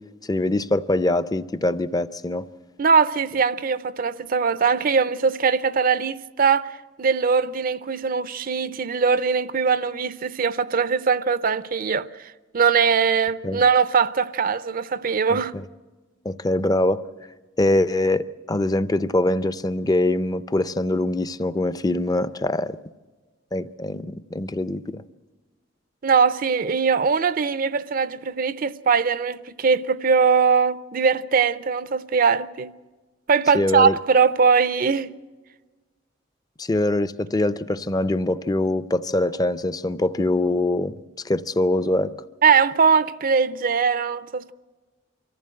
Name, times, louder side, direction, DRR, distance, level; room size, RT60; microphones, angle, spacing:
voice 1, 0.3-2.5 13.4-13.6 15.3-15.6 16.2-17.0 17.6-22.8 23.5-25.0 33.5-34.0 36.6-40.9 41.2-42.1, left 1 dB, 20° left, 0.5 m, -23 dB
voice 2, 2.8-6.7 7.0-12.1 12.5-15.5 26.0-32.7 33.3-35.1 42.4-44.5, right 5 dB, 50° right, 0.5 m, -21 dB
24.0 x 14.5 x 7.7 m
head